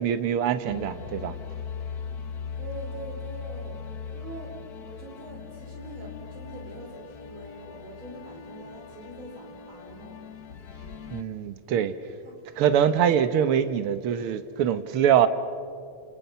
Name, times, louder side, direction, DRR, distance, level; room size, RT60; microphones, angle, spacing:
voice 1, 0.0-1.3 11.1-11.9 12.6-15.3, right 9 dB, 60° right, 1.6 m, -23 dB
sound 1, 0.7-11.2, left 6 dB, 90° left, 0.8 m, -39 dB
voice 2, 2.6-3.8 4.1-4.5 4.8-10.2 12.2-12.3, right 1 dB, 40° right, 5.6 m, -43 dB
29.5 x 29.0 x 5.7 m
omnidirectional pair, 3.4 m